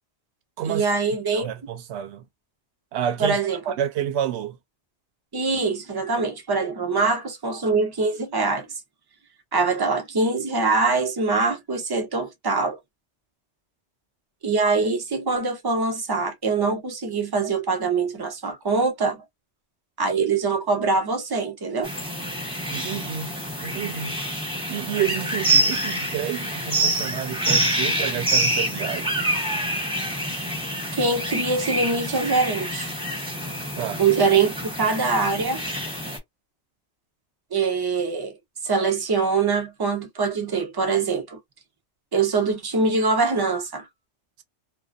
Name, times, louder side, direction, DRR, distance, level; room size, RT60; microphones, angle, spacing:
voice 1, 0.6-1.5 3.2-3.6 5.3-8.7 9.5-12.8 14.4-19.2 20.0-21.9 30.9-32.9 34.0-35.6 37.5-38.3 38.6-41.4 42.1-43.9, right 4 dB, 35° right, 0.3 m, -23 dB
voice 2, 1.3-2.2 2.9-3.4 3.6-4.6 22.7-23.3 23.6-24.2 24.7-29.3 33.8-34.0, right 10 dB, 70° right, 0.9 m, -29 dB
sound 1, 21.8-36.2, right 1 dB, 5° right, 0.8 m, -26 dB
2.3 x 2.2 x 2.4 m
omnidirectional pair, 1.2 m